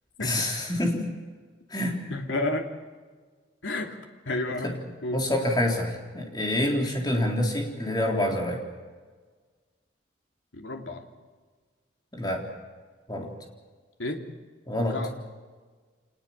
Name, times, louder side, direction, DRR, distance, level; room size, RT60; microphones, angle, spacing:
voice 1, 0.2-1.1 1.7-2.0 4.6-4.8 5.1-8.6 12.1-12.4 13.1-13.3 14.7-15.0, left 1 dB, 20° left, 1 dB, 3.8 m, -27 dB
voice 2, 2.1-2.7 3.6-4.0 4.2-4.7 5.0-5.2 10.5-11.0 14.0-14.2 14.9-15.2, left 2 dB, 85° left, 3 dB, 2.9 m, -30 dB
26.0 x 20.0 x 7.3 m, 1.5 s
head